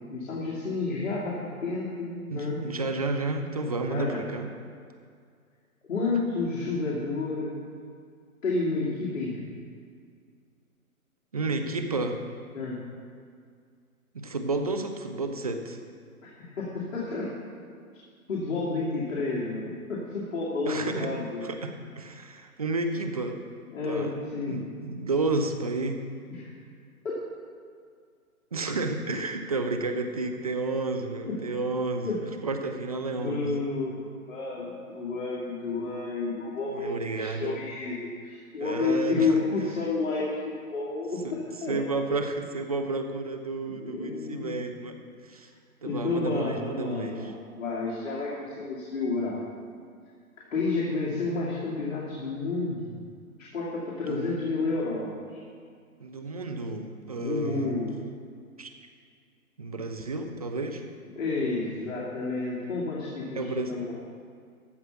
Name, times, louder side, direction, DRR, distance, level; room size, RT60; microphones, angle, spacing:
voice 1, 0.0-2.6 3.9-4.2 5.9-7.6 8.4-9.5 12.5-12.8 16.2-17.3 18.3-21.4 23.7-24.6 26.3-26.5 27.0-27.2 31.3-31.4 32.0-32.2 33.1-34.0 34.3-41.8 43.7-44.6 45.8-49.4 50.5-53.0 53.5-55.4 57.1-57.9 61.2-63.9, left 3 dB, 55° left, -6 dB, 2.5 m, -30 dB
voice 2, 2.3-4.5 11.3-12.2 14.1-15.8 20.7-21.1 21.4-23.4 23.8-24.1 24.5-26.0 28.5-32.1 32.4-33.5 36.7-37.6 38.6-39.3 41.2-41.3 41.7-45.5 45.8-47.3 54.1-54.4 56.0-57.8 58.6-58.7 59.6-60.8 63.3-63.7, right 3 dB, 25° right, 6 dB, 0.5 m, -31 dB
14.0 x 4.7 x 6.9 m, 2.2 s
hypercardioid pair, 150°, 44 cm